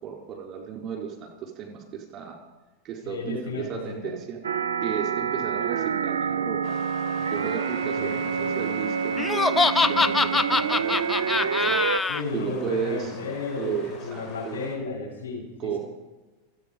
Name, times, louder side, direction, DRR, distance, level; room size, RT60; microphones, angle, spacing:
voice 1, 0.0-2.4 2.8-4.4 4.8-6.8 7.1-11.8 12.3-13.2 13.6-14.6 15.6-15.8, right 7 dB, 35° right, 2 dB, 4.2 m, -34 dB
voice 2, 3.0-4.1 8.0-8.6 12.1-13.8 14.0-15.8, left 4 dB, 75° left, -2 dB, 6.9 m, -33 dB
sound 1, 4.4-12.0, right 7 dB, 75° right, 0.8 m, -27 dB
sound 2, 6.6-14.8, left 6 dB, 40° left, 3.6 m, -43 dB
Laughter, 9.2-12.2, left 4 dB, 15° left, 0.6 m, -23 dB
27.0 x 9.4 x 5.3 m, 1.2 s
figure-of-eight pair, 90°, 0 cm